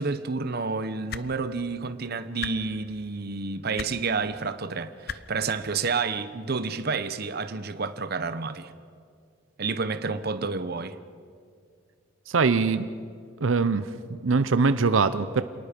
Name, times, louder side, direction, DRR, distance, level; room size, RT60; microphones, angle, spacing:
voice 1, 0.0-8.7 9.6-11.0, right 4 dB, 55° right, 0.9 m, -30 dB
sound 1, 1.1-1.3 2.4-2.5 3.8-3.9 5.1-5.2 6.4-6.5, left 7 dB, 55° left, 0.7 m, -34 dB
voice 2, 12.3-12.9 13.4-15.4, right 4 dB, 85° right, 0.7 m, -23 dB
28.0 x 19.0 x 5.2 m
head